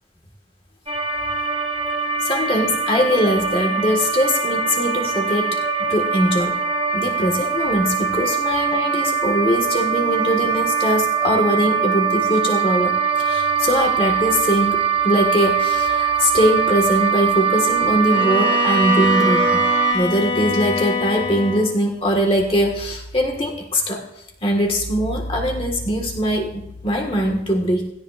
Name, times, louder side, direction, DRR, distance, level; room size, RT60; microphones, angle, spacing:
sound 1, 0.9-19.9, right 7 dB, 30° right, 1.1 m, -22 dB
voice 1, 2.2-5.6 5.9-6.6 6.9-19.6 19.9-24.0 24.4-27.9, equal, 30° left, 1 dB, 1.7 m, -21 dB
Bowed string instrument, 18.1-21.8, left 3 dB, 80° left, 1.4 m, -24 dB
17.0 x 12.5 x 2.5 m, 0.80 s
head